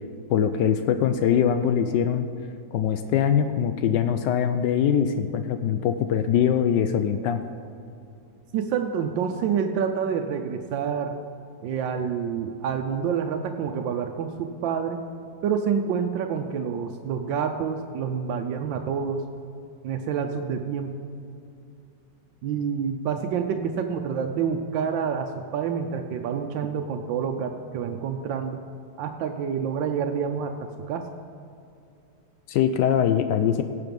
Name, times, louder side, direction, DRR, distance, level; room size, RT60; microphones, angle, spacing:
voice 1, 0.3-2.3 2.7-7.4 32.5-33.6, left 8 dB, 80° left, 9 dB, 1.2 m, -22 dB
voice 2, 8.5-11.2 11.6-15.0 15.4-19.2 19.8-20.9 22.4-28.6 29.0-31.1, right 7 dB, 90° right, 5 dB, 1.4 m, -28 dB
17.5 x 6.9 x 5.2 m, 2.6 s
omnidirectional pair, 2.0 m